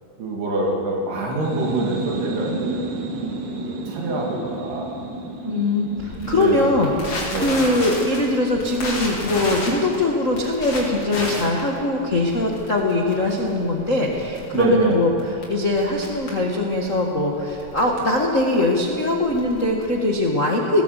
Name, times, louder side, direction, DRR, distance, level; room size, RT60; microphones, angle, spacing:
voice 1, 0.2-2.8 3.6-4.9 6.2-6.9 7.3-7.6 14.5-15.0, right 1 dB, 85° right, -2 dB, 4.6 m, -25 dB
sound 1, 1.3-8.8, right 3 dB, 60° right, 2.9 m, -32 dB
voice 2, 5.4-15.1 15.5-20.8, left 2 dB, 80° left, -1 dB, 0.7 m, -21 dB
Crackle, 6.0-20.2, left 2 dB, 40° left, 4.9 m, -33 dB
18.5 x 17.5 x 8.3 m, 2.6 s
omnidirectional pair, 4.5 m